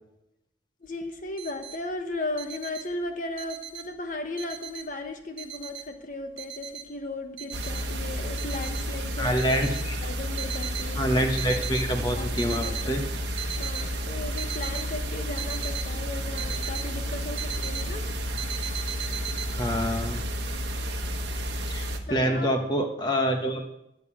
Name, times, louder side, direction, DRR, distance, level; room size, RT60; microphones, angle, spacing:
voice 1, 0.8-11.1 12.1-13.0 13.6-18.1 22.1-22.5, left 2 dB, 45° left, 5 dB, 1.1 m, -36 dB
sound 1, 0.9-1.0 1.2-1.8 2.1-4.0 4.4-5.1 5.4-7.1 7.4-7.9 8.4-8.9 9.3-10.9 11.3-11.9 12.3-12.9 13.2-13.9 14.4-16.9 17.1-18.0 18.4-19.5, right 9 dB, 80° right, 1.7 m, -37 dB
sound 2, 7.5-22.0, equal, 65° right, 1.2 m, -31 dB
voice 2, 9.2-10.0 11.0-13.0 19.5-20.2 21.7-23.6, equal, 25° left, 3 dB, 1.1 m, -26 dB
11.0 x 5.4 x 8.4 m, 0.84 s
head